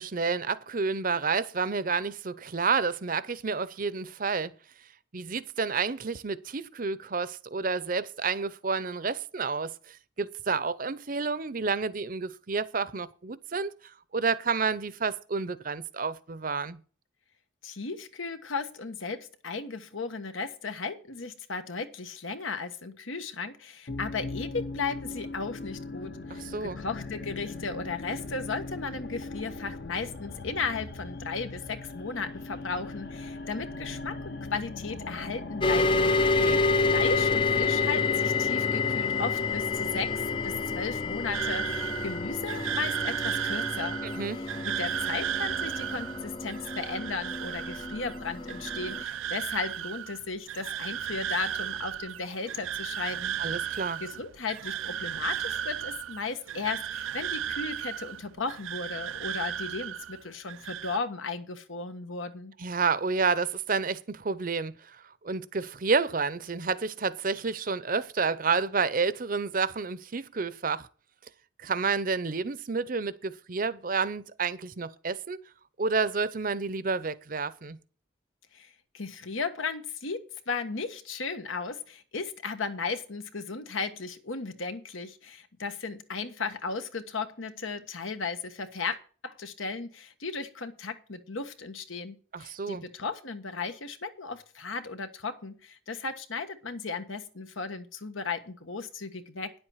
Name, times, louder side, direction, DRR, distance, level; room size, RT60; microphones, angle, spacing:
voice 1, 0.0-4.5 5.1-13.7 14.1-16.8 26.3-26.8 36.4-36.6 44.0-44.4 53.4-54.0 62.6-70.9 71.6-75.4 75.8-77.8 92.3-92.8, right 4 dB, 45° right, 0.7 m, -30 dB
voice 2, 17.6-36.1 36.9-44.0 44.6-53.4 53.6-62.5 78.5-78.7 78.9-89.0 89.2-99.5, left 4 dB, 85° left, 1.3 m, -35 dB
sound 1, 23.9-41.3, left 3 dB, 55° left, 0.9 m, -40 dB
sound 2, 35.6-49.0, left 4 dB, 25° left, 0.4 m, -29 dB
sound 3, 41.3-60.2 60.5-61.0, right 10 dB, 85° right, 0.4 m, -35 dB
9.9 x 7.9 x 5.7 m
head